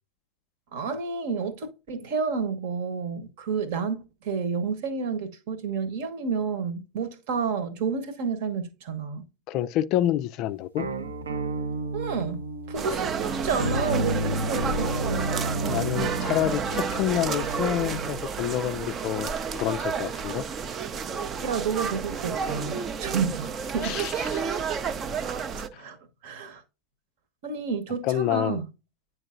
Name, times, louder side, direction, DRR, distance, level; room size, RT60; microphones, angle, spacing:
voice 1, 0.7-9.2 11.9-12.4 12.7-15.3 21.4-24.0 25.7-26.0 26.2-26.6 27.4-28.7, right 5 dB, 50° right, 1.1 m, -30 dB
voice 2, 9.5-10.9 15.7-20.4 23.8-24.6 25.7-25.8 28.0-28.6, left 13 dB, 40° left, 0.3 m, -28 dB
sound 1, 10.8-18.2, right 1 dB, 70° right, 0.8 m, -31 dB
sound 2, 12.7-25.7, right 6 dB, 25° right, 0.5 m, -31 dB
9.7 x 4.5 x 2.4 m
figure-of-eight pair, 90°, 0 cm